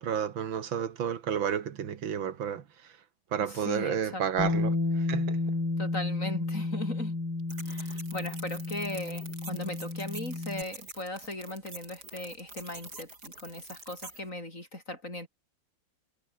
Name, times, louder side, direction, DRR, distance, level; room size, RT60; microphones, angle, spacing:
voice 1, 0.0-2.9 3.3-5.4, right 8 dB, 80° right, 2.3 m, -31 dB
voice 2, 3.5-4.6 5.8-7.2 7.6-15.3, left 1 dB, 40° left, 8.6 m, -38 dB
Bass guitar, 4.4-10.6, left 2 dB, 55° left, 6.3 m, -32 dB
sound 1, 7.5-14.2, right 3 dB, 55° right, 5.5 m, -46 dB
omnidirectional pair, 2.1 m